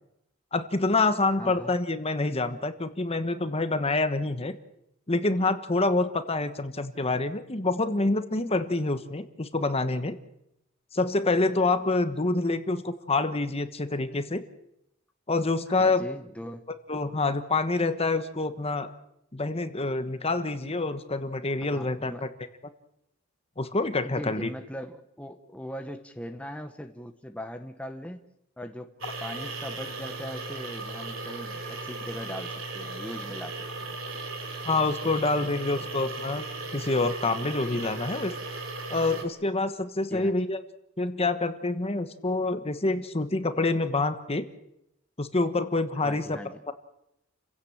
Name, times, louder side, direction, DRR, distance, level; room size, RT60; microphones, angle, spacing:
voice 1, 0.5-4.6 5.1-10.2 10.9-14.4 15.3-16.0 16.9-18.9 19.3-22.3 23.6-24.5 34.6-36.4 36.7-38.3 38.9-40.6 41.0-44.5 45.2-46.4 46.7-46.8, left 3 dB, 30° left, 10 dB, 1.2 m, -27 dB
voice 2, 1.4-1.7 15.7-16.6 21.7-22.3 24.0-28.2 28.6-34.0 35.4-35.9 40.1-40.4 46.0-46.6, equal, 5° left, 6 dB, 1.0 m, -40 dB
sound 1, 29.0-39.2, right 3 dB, 65° right, 3.6 m, -37 dB
29.5 x 16.5 x 7.3 m, 0.83 s
head